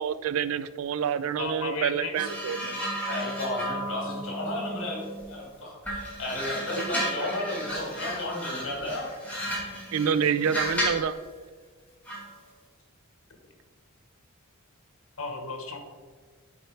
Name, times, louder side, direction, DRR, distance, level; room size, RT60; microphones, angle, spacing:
voice 1, 0.0-2.8 9.9-11.2, right 7 dB, 90° right, 14 dB, 0.4 m, -27 dB
voice 2, 1.4-2.3 15.2-15.8, left 3 dB, 85° left, 5 dB, 1.1 m, -34 dB
sound 1, 2.1-5.4 5.8-11.1 12.1-12.3, equal, 5° left, 2.1 m, -33 dB
voice 3, 3.1-9.1, left 1 dB, 65° left, -3 dB, 2.3 m, -33 dB
8.4 x 4.4 x 4.5 m, 1.5 s
head